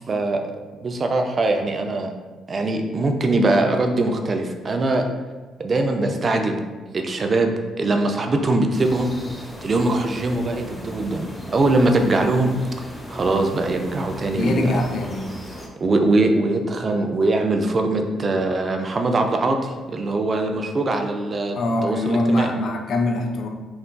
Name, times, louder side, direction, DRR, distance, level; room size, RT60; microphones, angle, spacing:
voice 1, 0.1-0.4 0.8-2.1 2.5-5.0 5.6-6.6 6.9-9.1 9.6-12.5 13.1-14.8 15.8-21.6 21.8-22.5, right 2 dB, 45° right, 4 dB, 0.4 m, -22 dB
sound 1, 8.7-15.7, equal, 10° left, 0.8 m, -38 dB
voice 2, 14.3-15.4 21.6-23.5, left 1 dB, 65° left, 3 dB, 0.4 m, -23 dB
3.6 x 2.4 x 2.2 m, 1.3 s
supercardioid pair, 55°, 0 cm